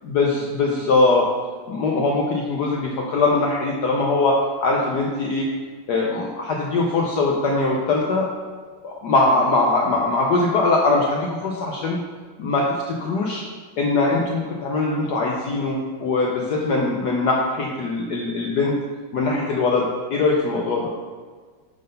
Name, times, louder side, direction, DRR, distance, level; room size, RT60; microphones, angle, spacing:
voice 1, 0.1-1.3 1.7-5.5 5.9-8.3 8.8-12.0 12.4-13.4 13.8-18.8 19.1-20.9, left 3 dB, 65° left, -2 dB, 1.1 m, -21 dB
6.6 x 3.8 x 5.1 m, 1.5 s
omnidirectional pair, 2.2 m